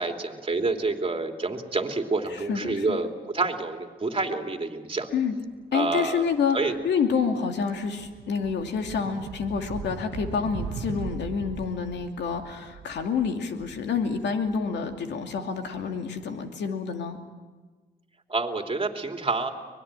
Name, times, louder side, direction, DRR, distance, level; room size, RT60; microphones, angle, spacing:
voice 1, 0.0-3.1 3.3-5.1 5.7-6.2 6.5-6.7 18.3-19.5, right 3 dB, 30° right, 4 dB, 2.9 m, -28 dB
voice 2, 2.3-3.0 5.1-5.3 5.7-17.2, left 6 dB, 75° left, 5 dB, 2.5 m, -28 dB
sound 1, 6.3-6.5 6.9-15.7, right 6 dB, 80° right, 1.6 m, -40 dB
24.5 x 20.0 x 9.0 m, 1.4 s
cardioid pair, 70°, 18 cm